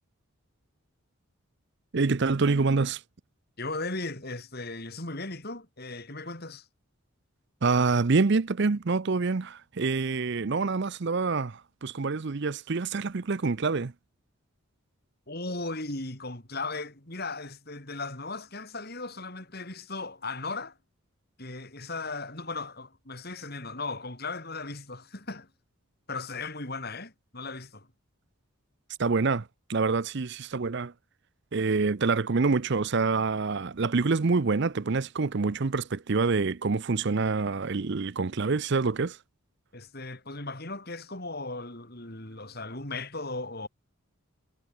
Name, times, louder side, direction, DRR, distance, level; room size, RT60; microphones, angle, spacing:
voice 1, 1.9-3.0 7.6-13.9 29.0-30.9 31.5-39.2, right 4 dB, 50° right, 0.6 m, -26 dB
voice 2, 3.6-6.7 15.3-20.8 21.4-25.5 26.1-27.9 39.7-43.7, left 3 dB, 45° left, 4.5 m, -37 dB
head